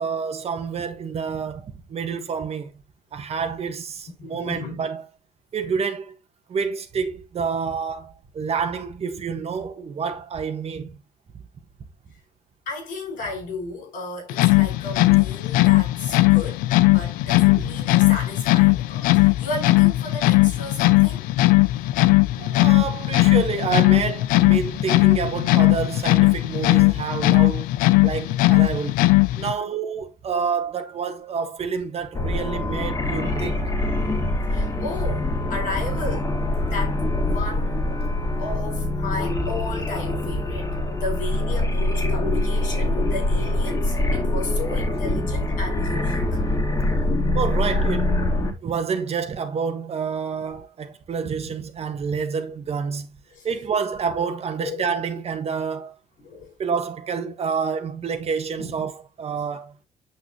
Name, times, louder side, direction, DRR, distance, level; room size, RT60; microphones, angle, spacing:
voice 1, 0.0-2.7 3.1-5.0 5.5-6.1 6.5-11.0 17.6-17.7 22.4-27.7 28.0-29.1 29.4-33.6 47.3-48.1 48.4-53.1 53.4-55.9 56.6-59.7, right 6 dB, 45° right, 1.5 m, -28 dB
voice 2, 4.2-4.9 12.7-16.6 16.9-21.2 29.4-29.8 30.3-30.4 33.0-36.3 36.6-37.9 38.4-40.7 41.0-46.4 51.4-51.5 53.3-53.5 54.2-54.3 54.6-54.8 56.2-56.5 58.6-58.8, left 3 dB, 75° left, 5.5 m, -34 dB
sound 1, 14.3-29.5, left 20 dB, 90° left, 0.5 m, -18 dB
sound 2, 32.1-48.5, left 1 dB, 25° left, 2.4 m, -24 dB
8.4 x 6.1 x 3.1 m
cardioid pair, 90°, 14 cm